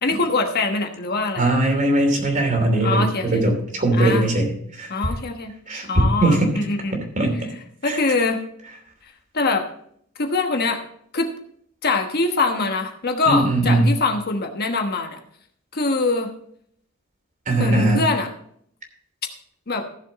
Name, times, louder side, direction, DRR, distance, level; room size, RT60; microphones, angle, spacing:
voice 1, 0.0-1.5 2.8-3.4 3.9-4.3 4.9-5.5 5.9-7.0 7.8-8.4 9.3-9.7 10.2-10.8 11.1-11.3 11.8-15.2 15.7-16.3 17.5-18.3 19.7-19.8, left 3 dB, 50° left, 5 dB, 1.2 m, -23 dB
voice 2, 1.4-4.5 4.8-4.9 5.7-6.5 7.2-7.3 7.8-8.0 13.3-13.9 17.5-18.0, right 1 dB, 40° right, 3 dB, 3.0 m, -19 dB
15.0 x 7.2 x 4.1 m, 0.65 s
head